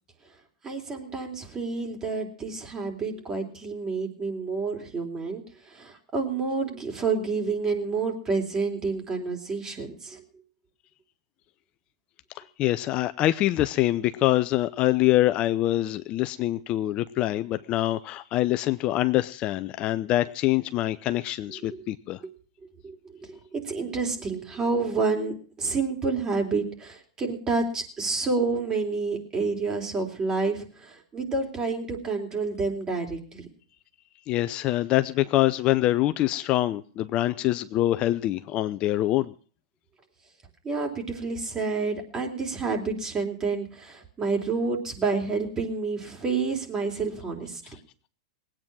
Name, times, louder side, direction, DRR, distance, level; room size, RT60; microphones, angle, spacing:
voice 1, 0.6-10.2 21.7-21.8 22.8-23.0 23.2-33.5 40.6-47.6, right 4 dB, 25° right, 3 dB, 3.6 m, -29 dB
voice 2, 12.4-22.2 34.3-39.3, left 15 dB, 40° left, 12 dB, 0.6 m, -25 dB
20.0 x 9.0 x 6.2 m, 0.42 s
hypercardioid pair, 115°, 3 cm